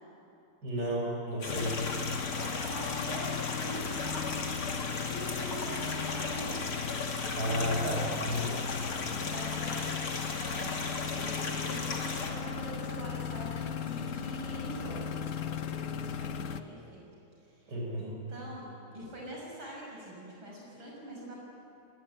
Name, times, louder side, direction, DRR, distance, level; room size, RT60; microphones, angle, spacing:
voice 1, 0.6-1.7 7.3-8.5 17.7-18.0, equal, 50° right, -2 dB, 6.7 m, -32 dB
sound 1, 1.4-12.3, left 3 dB, 90° left, 3.4 m, -37 dB
sound 2, 1.5-16.6, left 7 dB, 55° left, 0.9 m, -37 dB
voice 2, 2.4-3.9 4.1-4.4 5.0-6.7 9.1-10.1 10.6-10.8 11.1-17.1 17.5-21.4, right 1 dB, 70° right, -3 dB, 6.5 m, -44 dB
26.5 x 23.0 x 9.9 m, 2.9 s
omnidirectional pair, 2.3 m